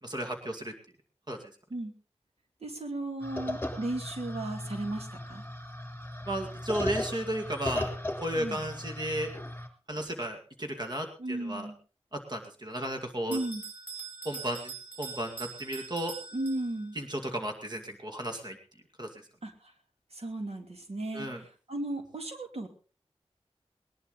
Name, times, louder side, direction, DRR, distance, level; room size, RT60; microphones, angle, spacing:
voice 1, 0.0-0.7 1.3-1.5 6.2-7.9 8.2-9.3 9.9-11.7 12.1-13.4 14.2-14.7 15.0-16.1 17.0-18.6 19.0-19.2 21.1-21.4, right 1 dB, 40° right, 4 dB, 2.3 m, -34 dB
voice 2, 2.6-5.4 8.3-8.6 11.2-11.8 13.3-13.6 16.3-17.0 19.4-19.7 20.1-22.7, right 2 dB, 70° right, 4 dB, 2.6 m, -35 dB
sound 1, 3.2-9.7, left 1 dB, 20° left, 3.4 m, -37 dB
Bell, 13.3-17.0, right 4 dB, 15° right, 3.8 m, -43 dB
20.5 x 11.0 x 4.0 m, 0.36 s
wide cardioid pair, 55°, 11 cm